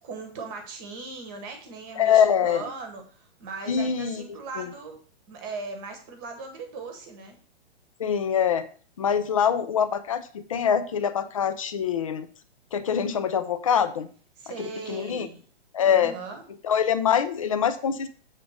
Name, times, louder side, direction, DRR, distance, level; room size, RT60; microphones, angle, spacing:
voice 1, 0.0-5.0 5.3-7.4 14.4-15.4 15.8-16.4, right 4 dB, 20° right, 5 dB, 1.1 m, -38 dB
voice 2, 2.0-2.6 3.7-4.2 4.6-4.7 8.0-8.7 9.0-12.3 12.7-14.1 14.6-15.3 15.7-16.1 16.6-18.1, left 8 dB, 30° left, 11 dB, 0.5 m, -24 dB
7.5 x 3.6 x 6.4 m, 0.43 s
hypercardioid pair, 170°, 33 cm